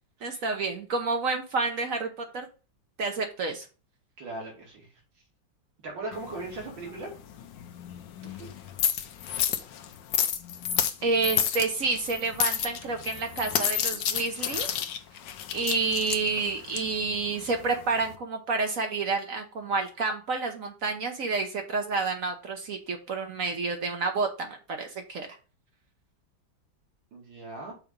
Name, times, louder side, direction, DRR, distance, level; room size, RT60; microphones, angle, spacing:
voice 1, 0.2-2.5 3.0-3.7 11.0-14.7 15.5-25.3, right 4 dB, 55° right, 5 dB, 1.1 m, -29 dB
voice 2, 4.2-4.9 5.8-7.1 8.2-8.5 27.1-27.7, right 2 dB, 80° right, -1 dB, 3.1 m, -39 dB
sound 1, 6.1-18.2, left 9 dB, 75° left, 1.4 m, -31 dB
5.9 x 4.1 x 5.0 m, 0.34 s
omnidirectional pair, 2.0 m